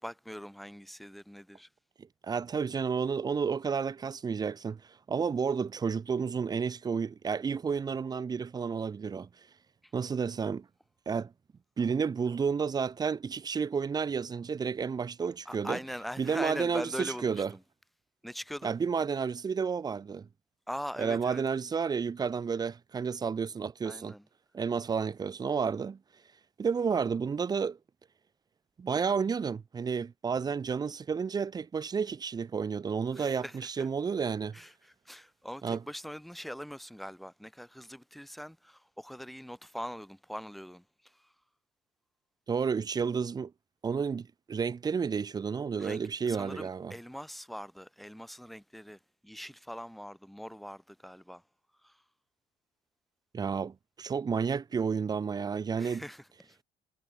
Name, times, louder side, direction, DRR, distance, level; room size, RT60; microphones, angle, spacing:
voice 1, 0.0-1.7 15.5-17.6 18.2-18.7 20.7-21.4 23.8-24.2 33.1-33.9 34.5-41.3 45.8-51.4 51.8-52.0 55.8-56.6, equal, ahead, 2.0 m, -42 dB
voice 2, 2.2-4.8 5.1-9.3 9.9-10.7 11.1-11.3 11.8-15.8 16.2-17.5 18.6-20.3 21.0-24.1 24.5-26.0 26.6-27.8 28.8-34.6 35.6-35.8 42.5-43.5 43.8-46.9 53.3-56.0, right 6 dB, 25° right, 0.5 m, -31 dB
cardioid pair, 110°, 17 cm